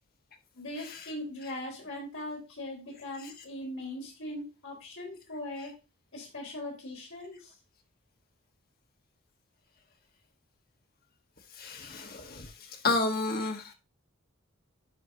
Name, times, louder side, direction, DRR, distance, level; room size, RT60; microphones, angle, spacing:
voice 1, 0.5-5.7 6.1-7.4, left 1 dB, 65° left, -2 dB, 4.5 m, -40 dB
voice 2, 11.6-12.5 12.8-13.6, left 3 dB, 40° left, 4 dB, 1.3 m, -30 dB
11.0 x 5.1 x 2.8 m, 0.30 s
head